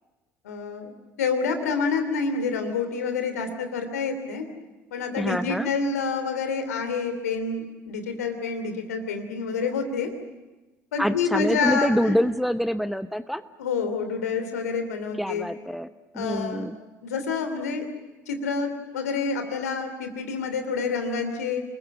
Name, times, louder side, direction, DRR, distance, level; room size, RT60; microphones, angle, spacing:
voice 1, 0.4-0.9 1.2-4.4 4.9-10.1 10.9-12.2 13.6-15.5 16.1-16.7 17.0-17.8 18.3-21.6, left 5 dB, 75° left, 7 dB, 3.0 m, -28 dB
voice 2, 5.2-5.7 11.0-13.4 15.2-15.9 16.1-16.7, equal, ahead, 13 dB, 1.0 m, -26 dB
29.5 x 21.0 x 8.7 m, 1.1 s
figure-of-eight pair, 60°, 9 cm